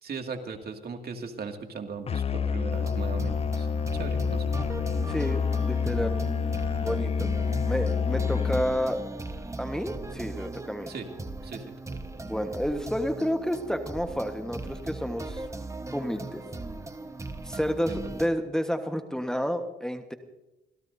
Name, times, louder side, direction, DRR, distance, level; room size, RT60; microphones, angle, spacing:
voice 1, 0.0-4.5 10.9-11.1 11.4-12.0, right 5 dB, 50° right, 4 dB, 2.3 m, -38 dB
Musical instrument, 2.1-8.9, left 6 dB, 30° left, 0.4 m, -28 dB
sound 1, 2.7-18.3, right 2 dB, 15° right, 1.2 m, -38 dB
voice 2, 5.1-6.2 6.8-7.3 7.7-9.0 9.6-10.9 12.2-15.4 15.9-16.4 17.4-20.1, equal, 5° left, 6 dB, 1.3 m, -30 dB
26.5 x 17.0 x 2.7 m, 0.96 s
cardioid pair, 90°, 20 cm